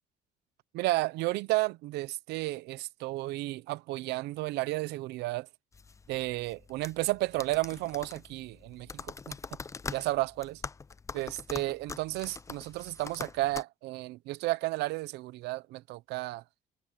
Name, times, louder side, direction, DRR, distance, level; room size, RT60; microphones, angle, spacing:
voice 1, 0.7-5.5 6.1-9.3 9.9-10.6 11.1-16.4, right 19 dB, 85° right, 0.7 m, -32 dB
sound 1, 5.7-13.6, left 4 dB, 20° left, 0.4 m, -43 dB
cardioid pair, 110°, 17 cm